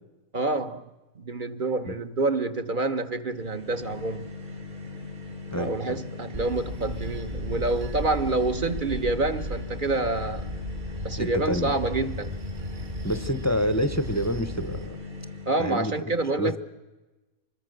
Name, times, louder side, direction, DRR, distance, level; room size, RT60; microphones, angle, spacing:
voice 1, 0.3-0.8 1.2-4.3 5.5-10.5 11.0-12.3 15.5-16.6, right 3 dB, 40° right, 1.0 m, -27 dB
sound 1, 3.2-15.8, left 3 dB, 75° right, 3.9 m, -40 dB
voice 2, 5.5-6.0 11.2-11.7 13.0-15.0 15.6-15.9 16.4-16.6, equal, 15° left, 0.7 m, -27 dB
Bell / Train, 6.3-14.9, left 1 dB, 55° right, 2.5 m, -36 dB
25.0 x 21.0 x 6.5 m
omnidirectional pair, 1.6 m